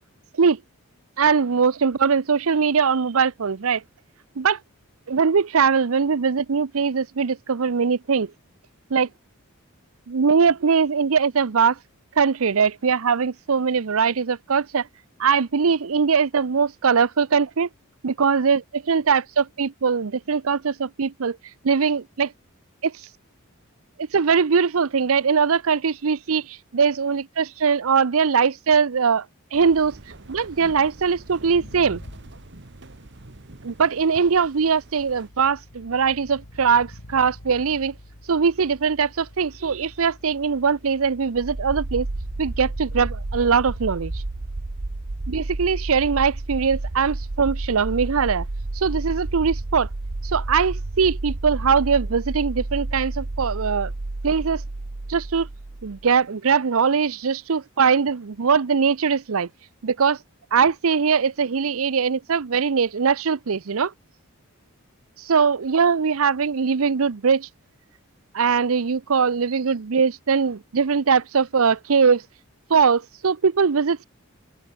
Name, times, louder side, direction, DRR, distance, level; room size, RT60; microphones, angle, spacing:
voice 1, 1.2-3.8 4.4-4.6 5.1-8.3 8.9-9.1 10.1-11.8 12.1-14.9 15.2-17.7 18.0-21.4 21.6-22.3 22.8-23.1 24.0-29.3 29.5-30.0 30.3-32.0 33.6-37.9 38.3-42.1 42.4-44.2 45.3-48.5 48.7-49.9 50.2-53.9 54.2-54.6 55.1-55.5 55.8-59.5 59.8-60.2 60.5-63.9 65.2-67.5 68.3-72.2 72.7-74.0, right 5 dB, 70° right, 0.6 m, -21 dB
sound 1, 29.5-35.3, right 2 dB, 50° right, 1.4 m, -45 dB
sound 2, 31.4-33.1 34.2-51.1, left 1 dB, 90° left, 3.1 m, -47 dB
sound 3, 41.3-56.1, right 2 dB, 90° right, 1.2 m, -31 dB
open air
head